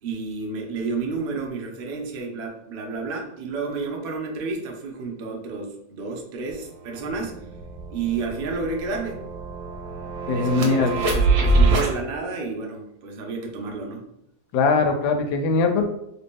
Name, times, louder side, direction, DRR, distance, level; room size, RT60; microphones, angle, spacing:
voice 1, 0.0-7.4 7.9-9.2 10.3-14.0, right 4 dB, 85° right, 1 dB, 0.5 m, -31 dB
sound 1, 6.5-6.6 6.9-11.9, right 2 dB, 60° right, 0.9 m, -24 dB
voice 2, 10.3-10.9 14.5-15.8, left 4 dB, 75° left, 5 dB, 1.1 m, -21 dB
2.9 x 2.8 x 3.5 m, 0.80 s
omnidirectional pair, 1.8 m